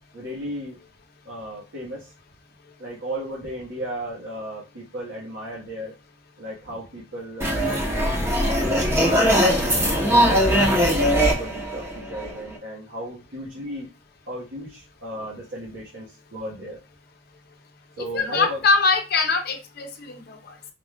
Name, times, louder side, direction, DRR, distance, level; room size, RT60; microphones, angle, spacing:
voice 1, 0.1-0.8 1.2-2.1 2.8-5.9 6.4-8.1 8.4-8.8 9.8-10.6 11.0-13.9 14.3-16.8 18.0-18.6, right 1 dB, 80° right, -6 dB, 1.4 m, -35 dB
sound 1, 7.4-12.6, equal, 15° right, 0.8 m, -20 dB
voice 2, 18.1-20.4, left 4 dB, 55° left, 5 dB, 0.7 m, -22 dB
4.0 x 2.4 x 3.5 m, 0.29 s
head